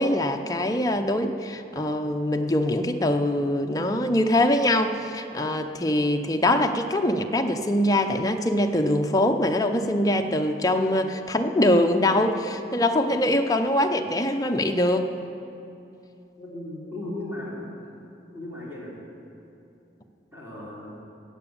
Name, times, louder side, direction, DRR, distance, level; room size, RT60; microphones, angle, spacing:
voice 1, 0.0-15.1, left 1 dB, 20° left, 5 dB, 0.6 m, -23 dB
voice 2, 16.4-17.5 18.3-18.9 20.3-20.9, left 1 dB, 15° right, -7 dB, 3.4 m, -36 dB
14.5 x 8.7 x 6.9 m, 2.8 s
head